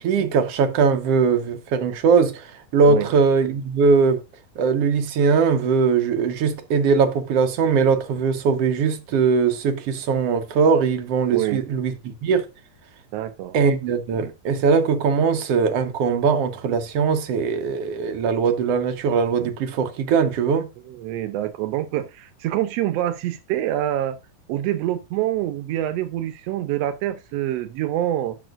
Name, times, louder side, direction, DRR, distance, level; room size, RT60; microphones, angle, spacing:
voice 1, 0.0-4.2 4.6-12.5 13.5-20.7, right 5 dB, 65° right, 1.7 m, -20 dB
voice 2, 11.3-11.6 13.1-13.6 20.9-24.2 24.5-28.4, right 13 dB, 90° right, 1.4 m, -26 dB
10.5 x 6.2 x 2.5 m
omnidirectional pair, 3.8 m